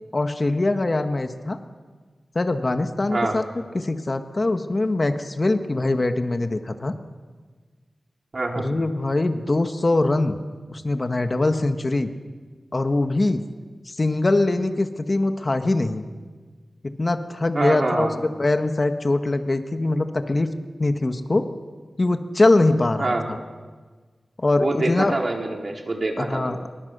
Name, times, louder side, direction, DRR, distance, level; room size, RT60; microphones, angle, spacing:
voice 1, 0.1-1.6 2.3-3.4 3.7-6.9 8.6-10.4 10.7-12.1 12.7-13.4 13.9-16.1 17.0-18.1 18.4-20.5 20.8-21.5 22.0-23.4 24.4-25.2 26.2-26.6, left 2 dB, 35° left, 7 dB, 1.6 m, -22 dB
voice 2, 8.3-8.7 17.5-18.1 23.0-23.2 24.6-26.6, right 2 dB, 45° right, 1 dB, 4.5 m, -25 dB
28.0 x 24.0 x 6.8 m, 1.4 s
wide cardioid pair, 80°, 0 cm